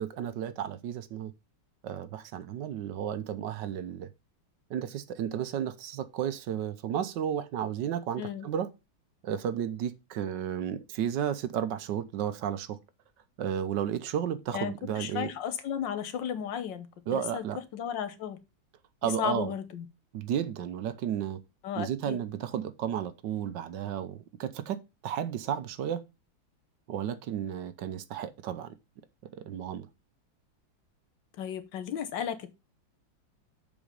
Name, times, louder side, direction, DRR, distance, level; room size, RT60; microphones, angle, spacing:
voice 1, 0.0-1.3 1.8-4.1 4.7-8.7 9.2-12.8 13.4-15.3 17.1-17.6 19.0-19.5 20.1-21.4 21.8-24.8 25.0-26.0 26.9-28.7 29.4-29.9, right 9 dB, 70° right, 1.3 m, -33 dB
voice 2, 8.2-8.5 14.5-16.9 17.1-17.4 17.7-18.4 19.0-19.9 21.6-22.2 31.4-32.5, left 9 dB, 70° left, 1.6 m, -34 dB
7.2 x 5.0 x 5.0 m
omnidirectional pair, 2.1 m